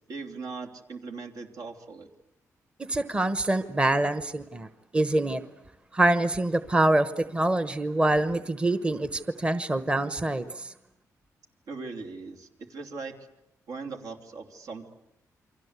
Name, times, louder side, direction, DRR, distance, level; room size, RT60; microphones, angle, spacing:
voice 1, 0.1-2.1 11.7-13.1 13.7-14.9, right 4 dB, 75° right, 4 dB, 3.2 m, -39 dB
voice 2, 2.9-4.7 4.9-5.4 5.9-10.7, right 2 dB, 20° right, 13 dB, 1.0 m, -25 dB
29.0 x 24.5 x 8.2 m, 0.86 s
wide cardioid pair, 135°, 6 cm